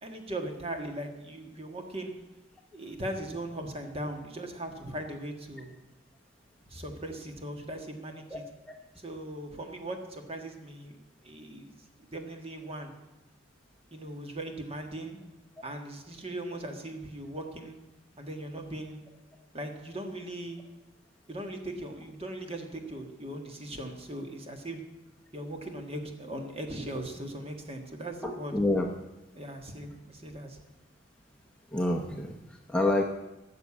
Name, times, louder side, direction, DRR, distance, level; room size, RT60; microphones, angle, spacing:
voice 1, 0.0-2.1 2.7-5.8 6.7-8.4 9.0-11.0 11.2-12.9 13.9-15.2 15.6-17.8 18.2-19.0 19.5-20.6 21.3-24.8 25.3-28.5 29.4-30.6, right 1 dB, 30° right, 4 dB, 1.6 m, -39 dB
voice 2, 28.2-28.9 31.7-33.0, left 1 dB, 5° left, 0 dB, 0.9 m, -28 dB
13.5 x 6.7 x 8.5 m, 1.0 s
head